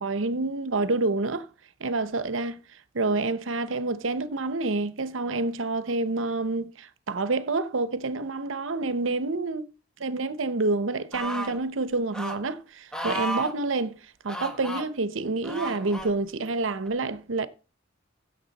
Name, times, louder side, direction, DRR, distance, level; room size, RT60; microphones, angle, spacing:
voice 1, 0.0-1.5 1.8-2.6 2.9-9.6 10.0-14.0 14.2-17.5, right 3 dB, 70° right, 0.8 m, -28 dB
sound 1, 11.1-11.6 12.1-12.4 12.9-13.5 14.3-14.8 15.4-16.1 16.9-17.0, equal, 5° left, 1.4 m, -33 dB
15.5 x 6.7 x 4.1 m
head